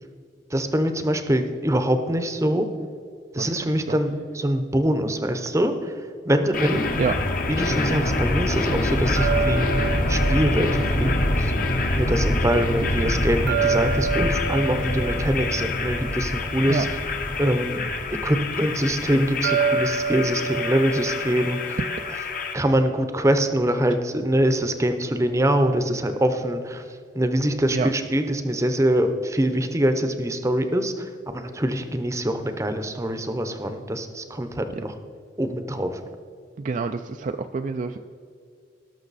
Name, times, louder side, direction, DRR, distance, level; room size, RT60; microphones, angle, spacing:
voice 1, 0.5-2.7 3.3-5.9 6.2-6.8 7.5-11.5 11.9-17.0 17.4-17.8 18.2-21.8 22.1-22.2 22.5-26.8 27.1-34.9 35.4-36.0, right 1 dB, 15° right, 8 dB, 0.7 m, -24 dB
sound 1, 6.5-22.5, left 2 dB, 45° left, 1.0 m, -25 dB
sound 2, 9.2-12.2 13.5-17.0 19.4-22.5, right 5 dB, 65° right, 0.7 m, -29 dB
voice 2, 36.6-38.0, right 4 dB, 40° right, 7 dB, 0.3 m, -27 dB
18.5 x 6.2 x 4.1 m, 2.3 s
head